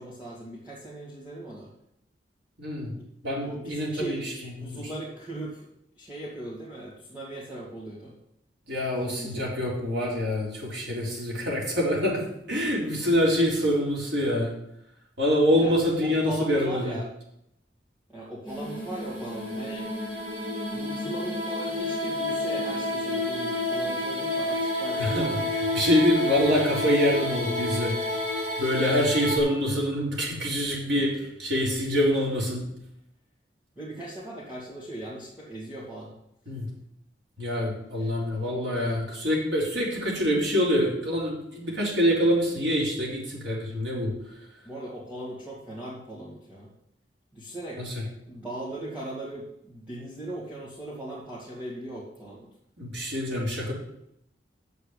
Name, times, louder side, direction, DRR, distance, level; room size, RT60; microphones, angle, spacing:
voice 1, 0.0-1.7 3.0-3.1 3.3-4.3 4.6-5.7 6.0-8.1 9.0-9.5 11.0-11.3 15.6-15.7 16.0-17.1 18.1-19.9 20.7-25.5 33.8-36.1 38.0-38.1 44.6-46.7 47.3-47.9 48.3-52.5, right 1 dB, 10° right, -8 dB, 2.1 m, -38 dB
voice 2, 2.6-2.9 3.2-4.2 4.6-4.8 8.7-12.2 12.5-14.5 15.2-16.9 25.0-25.3 25.7-28.0 28.6-32.6 36.5-36.7 37.4-44.1 47.8-47.9 52.8-53.7, equal, 80° right, -3 dB, 4.0 m, -25 dB
sound 1, 18.5-29.4, left 1 dB, 40° right, 5.5 m, -30 dB
8.1 x 6.9 x 8.3 m, 0.76 s
head